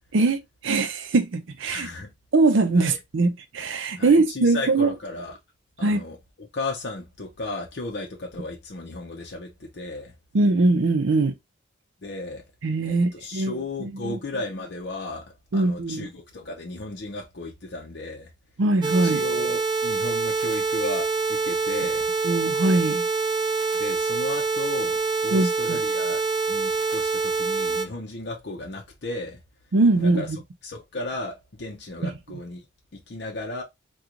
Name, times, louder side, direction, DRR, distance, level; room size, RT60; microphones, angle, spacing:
voice 1, 0.1-1.9 2.3-4.9 5.8-6.0 10.3-11.3 12.6-14.2 15.5-16.1 18.6-19.2 22.2-23.0 25.3-25.8 29.7-30.4 32.0-32.1, right 3 dB, 75° right, 0.5 m, -22 dB
voice 2, 1.7-2.1 2.7-3.0 4.0-5.4 5.8-10.1 12.0-12.4 12.9-18.3 19.0-22.1 23.7-29.4 30.0-30.3 30.6-32.6 32.9-33.6, left 2 dB, 55° left, 0.6 m, -35 dB
sound 1, 18.8-27.9, right 4 dB, 25° right, 0.3 m, -25 dB
3.7 x 2.3 x 2.9 m
head